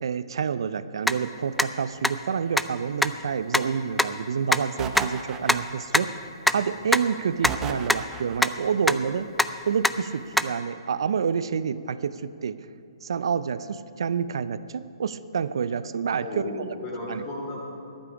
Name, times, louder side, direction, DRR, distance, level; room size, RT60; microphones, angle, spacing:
voice 1, 0.0-6.1 6.5-9.3 9.7-12.6 13.0-16.3 17.1-17.2, right 6 dB, 65° right, 15 dB, 0.5 m, -28 dB
sound 1, 1.1-1.2 1.6-1.7 2.0-2.1 2.6-2.7 3.0-3.1 3.5-3.6 4.0-4.1 4.5-4.6 5.0-5.1 5.5-5.6 5.9-6.0 6.5-6.6 6.9-7.0 7.4-7.5 7.9-8.0 8.4-8.5 8.9-9.0 9.4-9.5 9.8-9.9 10.4-10.5, left 1 dB, 5° left, 0.3 m, -20 dB
sound 2, 4.8-6.0 7.4-8.5, right 6 dB, 20° right, 0.9 m, -34 dB
voice 2, 16.2-18.0, left 1 dB, 30° left, -4 dB, 3.5 m, -35 dB
14.0 x 11.5 x 4.9 m, 2.5 s
hypercardioid pair, 130°, 3 cm